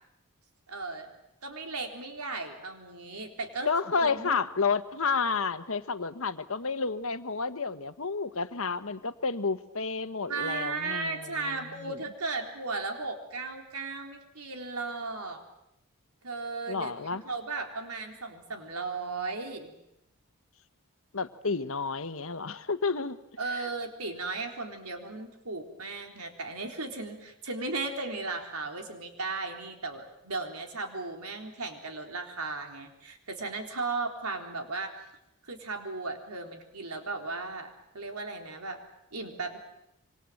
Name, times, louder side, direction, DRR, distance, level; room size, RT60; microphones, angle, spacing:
voice 1, 0.7-1.1 1.4-4.4 10.3-15.4 16.2-16.9 17.2-19.7 23.4-34.9 35.4-38.8 39.1-39.6, right 3 dB, 90° right, 4 dB, 3.9 m, -36 dB
voice 2, 3.7-12.0 16.7-17.2 21.1-23.2 23.5-23.7, left 4 dB, 65° left, 11 dB, 1.3 m, -31 dB
26.5 x 25.0 x 7.8 m, 0.85 s
head